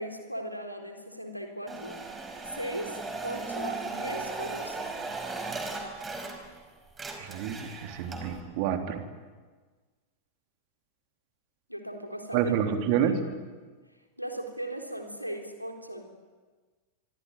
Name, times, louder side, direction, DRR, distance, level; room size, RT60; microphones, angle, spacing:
voice 1, 0.0-2.0 2.4-5.0 11.7-12.5 13.0-13.1 14.2-16.0, right 1 dB, 90° right, 4 dB, 3.8 m, -38 dB
sound 1, 1.7-6.6 6.9-8.4, right 3 dB, 15° right, 5.0 m, -37 dB
voice 2, 7.2-9.0 12.3-13.2, right 8 dB, 45° right, 6 dB, 3.5 m, -28 dB
25.5 x 24.0 x 9.6 m, 1.4 s
figure-of-eight pair, 90°, 0 cm